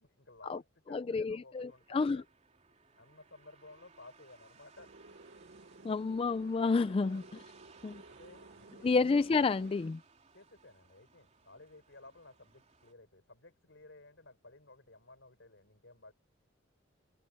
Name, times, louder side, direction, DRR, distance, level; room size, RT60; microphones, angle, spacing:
voice 1, 0.0-2.2 2.9-4.9 8.1-9.1 10.3-16.1, left 2 dB, 70° left, 5.3 m, -56 dB
voice 2, 0.9-2.2 5.8-7.4 7.8-8.0 8.8-10.0, left 4 dB, 30° left, 0.3 m, -30 dB
sound 1, 1.5-12.9, right 5 dB, 35° right, 3.4 m, -63 dB
sound 2, 4.8-9.9, right 2 dB, 55° right, 0.8 m, -56 dB
head